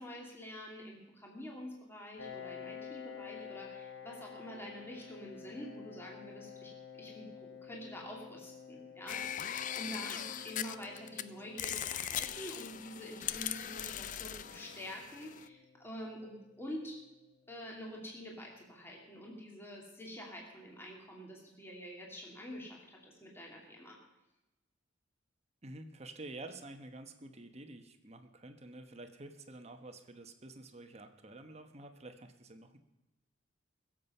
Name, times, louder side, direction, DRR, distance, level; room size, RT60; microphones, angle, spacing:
voice 1, 0.0-6.7 7.0-17.0 17.5-24.0, equal, 10° left, -2 dB, 2.5 m, -47 dB
Piano, 2.2-17.5, left 7 dB, 70° left, 1.2 m, -51 dB
sound 1, 9.1-11.2 11.6-15.5, left 10 dB, 45° left, 0.5 m, -40 dB
voice 2, 25.6-32.8, right 2 dB, 35° right, 7 dB, 1.1 m, -49 dB
22.0 x 7.6 x 5.5 m, 0.97 s
head